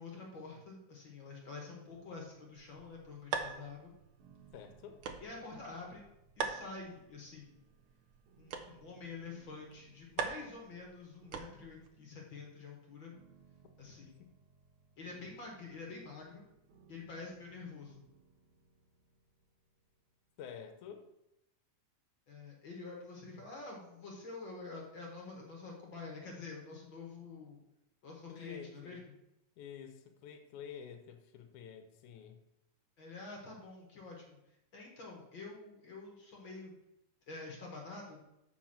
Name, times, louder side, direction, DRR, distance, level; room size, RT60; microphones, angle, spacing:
voice 1, 0.0-3.9 5.2-6.0 6.4-7.6 8.4-13.1 13.8-14.3 15.0-16.4 16.9-18.0 22.3-27.6 28.0-29.1 33.0-34.4 34.7-36.8 37.3-38.2, left 3 dB, 45° left, -1 dB, 2.0 m, -47 dB
sound 1, 1.9-20.8, right 5 dB, 60° right, 2.1 m, -65 dB
sound 2, 2.6-11.9, right 5 dB, 80° right, 1.2 m, -44 dB
voice 2, 4.5-5.0 14.2-14.3 20.4-21.1 28.3-29.0 29.6-32.4, left 8 dB, 85° left, 7 dB, 2.3 m, -49 dB
7.2 x 5.4 x 5.7 m, 0.85 s
omnidirectional pair, 3.4 m